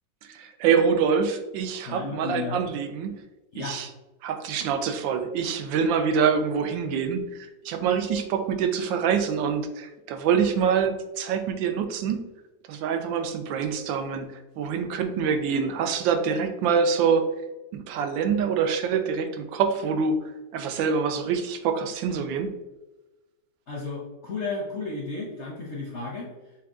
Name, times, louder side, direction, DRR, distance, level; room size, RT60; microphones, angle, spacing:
voice 1, 0.2-3.2 3.6-3.9 4.2-12.2 12.7-17.3 17.7-20.2 20.5-22.5, right 6 dB, 90° right, 6 dB, 1.3 m, -25 dB
voice 2, 1.9-2.6 3.5-3.8 23.7-26.3, left 3 dB, 60° left, -2 dB, 0.7 m, -33 dB
6.2 x 2.3 x 3.5 m, 1.0 s
omnidirectional pair, 2.0 m